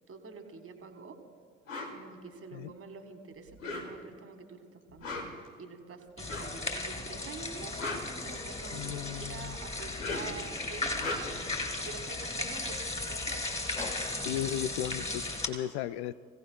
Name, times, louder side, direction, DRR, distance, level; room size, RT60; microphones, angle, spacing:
voice 1, 0.1-1.2 1.9-5.1 5.6-7.8 8.2-11.3 11.7-12.8 13.1-13.5, right 4 dB, 35° right, 6 dB, 2.0 m, -47 dB
sound 1, 1.7-2.0 3.5-4.2 4.9-5.5 6.2-6.6 7.5-8.8 9.8-10.4 10.9-11.5 13.1-13.2 13.4-15.1, left 2 dB, 80° left, 1.7 m, -39 dB
sound 2, 6.2-15.5, left 2 dB, 15° left, 2.9 m, -36 dB
voice 2, 8.7-9.5 14.2-16.1, left 12 dB, 65° left, 15 dB, 0.5 m, -35 dB
27.0 x 17.0 x 2.3 m, 2.2 s
figure-of-eight pair, 50°, 39 cm